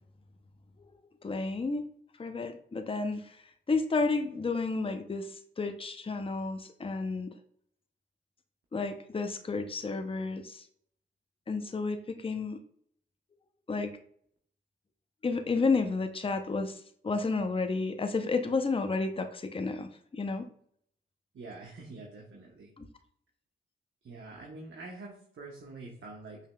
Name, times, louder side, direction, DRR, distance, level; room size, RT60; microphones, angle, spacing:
voice 1, 1.2-1.9 2.2-3.4 3.7-7.3 8.7-10.6 11.5-12.6 13.7-13.9 15.2-16.8 17.0-20.5 22.8-22.9, left 3 dB, 25° left, 7 dB, 0.6 m, -31 dB
voice 2, 21.3-22.7 24.0-26.4, right 3 dB, 70° right, -2 dB, 0.9 m, -45 dB
5.5 x 3.2 x 2.2 m, 0.64 s
supercardioid pair, 45°, 21 cm